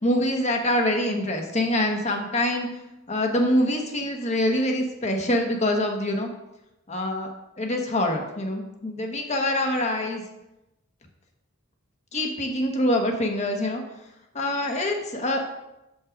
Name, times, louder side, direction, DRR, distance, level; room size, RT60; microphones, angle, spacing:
voice 1, 0.0-2.7 3.1-6.3 6.9-7.3 7.6-10.2 12.1-13.8 14.3-15.5, left 1 dB, 35° left, 3 dB, 1.2 m, -25 dB
7.5 x 5.4 x 5.1 m, 0.92 s
head